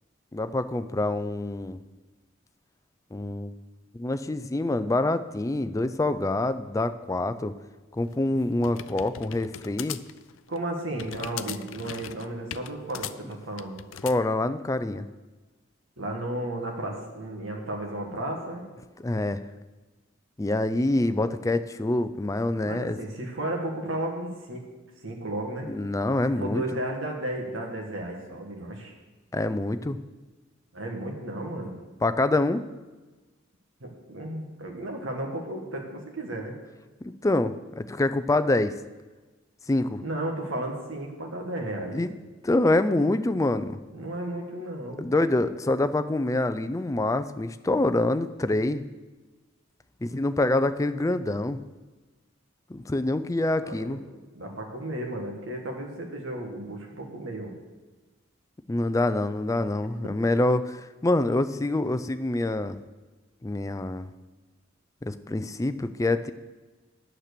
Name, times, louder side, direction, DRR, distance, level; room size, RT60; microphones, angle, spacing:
voice 1, 0.3-1.8 3.1-3.5 3.9-7.5 8.0-10.0 14.0-15.1 19.0-19.4 20.4-23.0 25.7-26.6 29.3-30.0 32.0-32.6 37.0-38.7 39.7-40.0 41.9-42.1 42.4-43.8 45.0-48.8 50.0-51.6 52.7-54.0 58.7-62.8 63.4-64.1 65.0-66.3, left 2 dB, 15° left, 11 dB, 0.4 m, -26 dB
sound 1, 8.1-14.2, left 10 dB, 75° left, 0.4 m, -39 dB
voice 2, 10.5-13.8 16.0-18.6 22.6-24.6 25.0-25.7 26.4-28.9 30.7-31.7 33.8-36.5 40.0-42.0 43.9-45.1 53.6-54.0 54.3-57.5, right 1 dB, 80° right, 1 dB, 1.8 m, -34 dB
9.3 x 7.4 x 6.8 m, 1.2 s
head